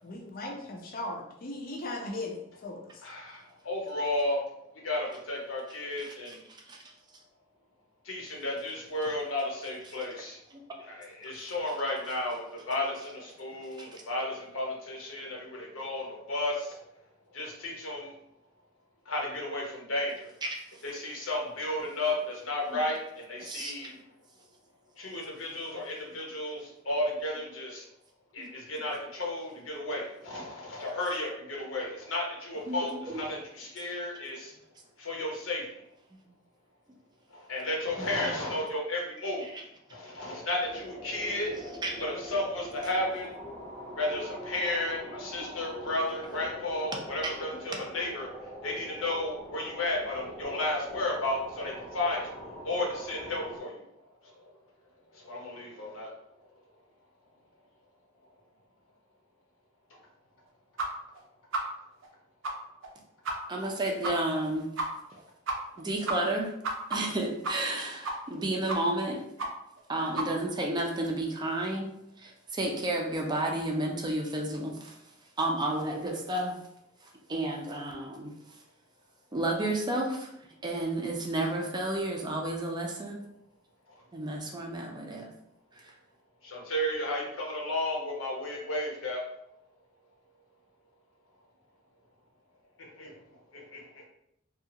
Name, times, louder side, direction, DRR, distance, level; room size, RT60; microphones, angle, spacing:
voice 1, 0.0-2.8, left 2 dB, 45° left, 1 dB, 0.4 m, -38 dB
voice 2, 3.0-4.4 4.8-6.4 8.0-10.4 10.8-16.8 17.3-18.1 19.1-20.3 20.8-23.9 25.0-27.8 28.3-34.5 35.0-35.8 37.3-39.5 39.9-41.5 42.0-43.3 44.0-48.3 48.6-52.3 52.6-53.8 54.4-54.5 55.1-56.1 86.4-89.2 93.0-93.1 93.5-94.0, left 1 dB, 85° left, -2 dB, 0.9 m, -33 dB
voice 3, 6.0-6.4 6.7-6.8 10.5-10.6 13.8-14.0 20.4-20.6 22.7-22.8 23.4-23.7 28.4-28.5 32.7-33.2 38.0-38.2 39.4-39.6 41.8-41.9 47.2-47.3 63.5-64.7 65.8-66.5 66.9-69.3 69.9-71.9 72.2-75.0 75.4-76.5 77.3-78.3 79.3-80.3 80.6-83.2 84.1-85.3 85.8-85.9, right 1 dB, 20° right, 0 dB, 0.4 m, -31 dB
sound 1, 40.6-53.6, equal, 10° left, 0.8 m, -44 dB
sound 2, 60.8-60.9 61.1-61.2 61.5-61.6 62.0-62.1 62.4-62.5 62.8-62.9 63.2-63.3 63.6-63.7 64.0-64.1 64.4-64.5 64.8-64.9 65.2-65.3 65.5-65.8 66.1-67.8 68.0-68.4 68.7-69.0 69.4-69.5 69.8-69.9 70.2-70.3, right 2 dB, 75° right, 0.5 m, -32 dB
2.7 x 2.4 x 2.8 m, 0.78 s
head